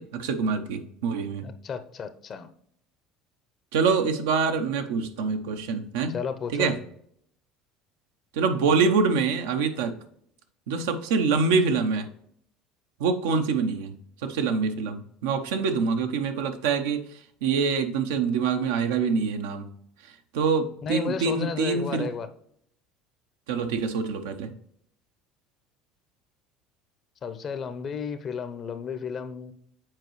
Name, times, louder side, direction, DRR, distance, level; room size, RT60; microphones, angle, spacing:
voice 1, 0.0-1.5 3.7-6.1 6.5-6.8 8.3-9.9 10.7-12.1 13.0-13.9 14.2-17.0 17.4-19.7 20.3-22.1 23.5-24.5, right 5 dB, 80° right, 0.7 m, -25 dB
voice 2, 1.4-2.5 6.1-6.7 20.8-22.3 27.2-29.5, left 6 dB, 45° left, 0.7 m, -33 dB
7.6 x 4.7 x 3.1 m
hypercardioid pair, 75°, 0 cm